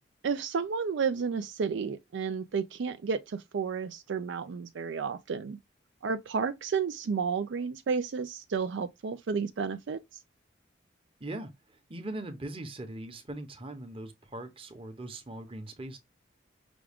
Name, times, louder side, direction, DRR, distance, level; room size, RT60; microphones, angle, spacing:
voice 1, 0.2-5.6 6.0-10.2, right 5 dB, 75° right, 0.4 m, -32 dB
voice 2, 11.2-16.0, right 1 dB, 30° right, 0.9 m, -40 dB
6.0 x 2.3 x 3.5 m
head